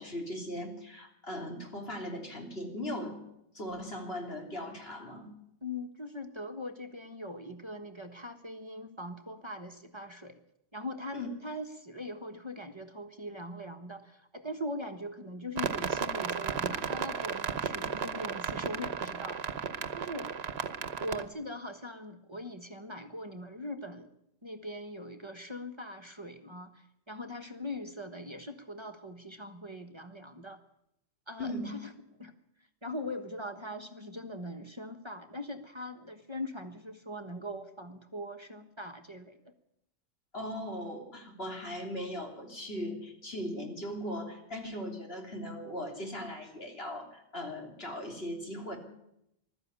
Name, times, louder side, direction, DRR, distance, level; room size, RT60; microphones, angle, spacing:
voice 1, 0.0-3.2 3.5-5.3 11.1-11.3 21.2-21.3 31.4-31.8 40.3-48.8, left 1 dB, 70° left, 1 dB, 3.7 m, -39 dB
voice 2, 5.6-10.4 10.7-19.4 19.9-20.3 21.0-24.1 24.4-30.6 31.3-31.9 32.2-32.3 32.8-39.5, left 1 dB, 25° right, 5 dB, 1.4 m, -41 dB
sound 1, 15.6-21.2, right 6 dB, 75° right, 1.2 m, -34 dB
21.0 x 13.0 x 9.7 m, 0.82 s
omnidirectional pair, 1.1 m